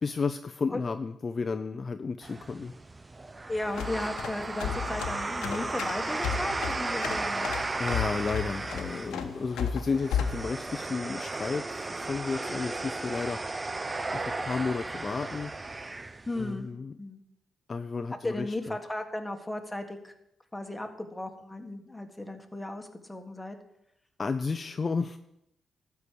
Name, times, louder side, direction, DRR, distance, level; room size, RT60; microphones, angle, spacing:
voice 1, 0.0-2.7 7.8-13.4 14.1-15.5 16.4-17.0 17.7-18.8 24.2-25.2, left 4 dB, 40° left, 9 dB, 0.5 m, -32 dB
sound 1, 2.2-16.5, right 2 dB, 25° right, 0.6 m, -35 dB
voice 2, 3.5-7.5 16.3-16.7 17.0-17.2 18.2-20.1 20.5-23.6, left 1 dB, 10° left, 5 dB, 1.5 m, -35 dB
sound 2, 3.6-10.4, left 7 dB, 90° left, 1.0 m, -34 dB
12.5 x 4.7 x 8.5 m, 0.80 s
cardioid pair, 75°, 0 cm